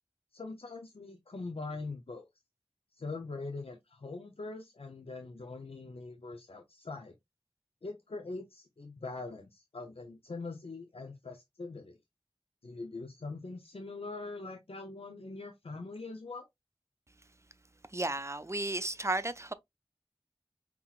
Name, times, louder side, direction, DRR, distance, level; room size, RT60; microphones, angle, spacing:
voice 1, 0.3-2.3 2.9-7.1 7.8-12.0 12.6-16.5, left 3 dB, 85° left, 0.5 m, -42 dB
voice 2, 17.9-19.5, right 2 dB, 30° right, 0.5 m, -33 dB
5.6 x 2.9 x 2.3 m
wide cardioid pair, 45°, 10 cm